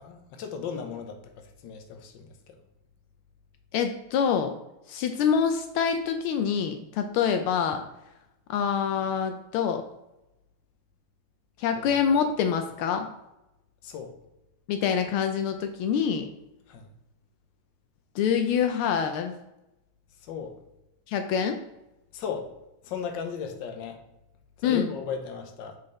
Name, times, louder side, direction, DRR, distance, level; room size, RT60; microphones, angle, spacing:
voice 1, 0.0-2.6 11.7-12.0 13.8-14.1 16.7-16.9 20.2-20.6 22.1-22.5 22.8-24.0 24.6-25.8, left 6 dB, 65° left, 5 dB, 1.5 m, -36 dB
voice 2, 3.7-4.5 4.9-7.8 8.5-9.8 11.6-13.1 14.7-16.3 18.1-19.3 21.1-21.6 24.6-24.9, left 7 dB, 85° left, 6 dB, 1.5 m, -25 dB
7.5 x 4.0 x 3.8 m, 0.93 s
omnidirectional pair, 2.3 m